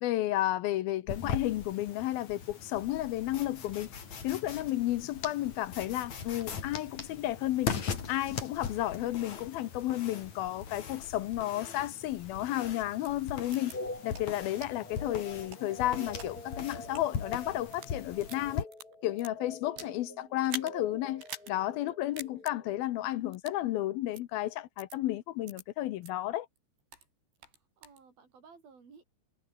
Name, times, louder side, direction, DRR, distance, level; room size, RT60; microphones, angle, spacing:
voice 1, 0.0-3.9 4.2-7.7 8.1-13.8 14.0-18.7 19.0-26.5, left 15 dB, 70° left, 2.5 m, -32 dB
sound 1, 1.1-18.6, left 6 dB, 45° left, 4.1 m, -40 dB
sound 2, 13.0-13.1 13.5-13.7 14.1-14.2 14.6-14.7 15.3-16.3 16.8-17.0 17.6-17.9 18.2-20.0 20.4-20.7 21.2-21.5 21.8-21.9 22.2-22.5 23.3-23.6 24.1-24.2 24.8-25.0 25.5-25.6 26.0-26.1 26.6-27.1 27.4-28.0, right 5 dB, 80° right, 9.4 m, -44 dB
sound 3, 13.7-22.9, left 2 dB, 20° left, 7.7 m, -46 dB
voice 2, 19.6-20.4 27.8-29.0, right 5 dB, 55° right, 7.3 m, -56 dB
omnidirectional pair, 5.0 m